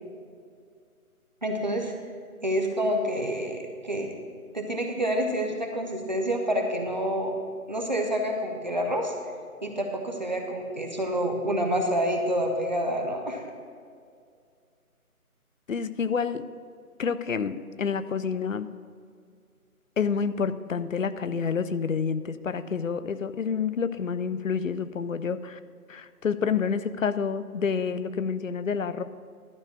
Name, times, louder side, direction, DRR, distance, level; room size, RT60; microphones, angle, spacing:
voice 1, 1.4-1.9 2.4-4.1 4.5-7.3 7.7-9.1 9.6-13.4, equal, 30° right, 2 dB, 0.7 m, -28 dB
voice 2, 15.7-16.5 17.0-18.7 20.0-25.6 25.9-29.0, left 6 dB, 60° left, 13 dB, 0.6 m, -28 dB
12.0 x 4.3 x 8.0 m, 2.2 s
figure-of-eight pair, 155°, 44 cm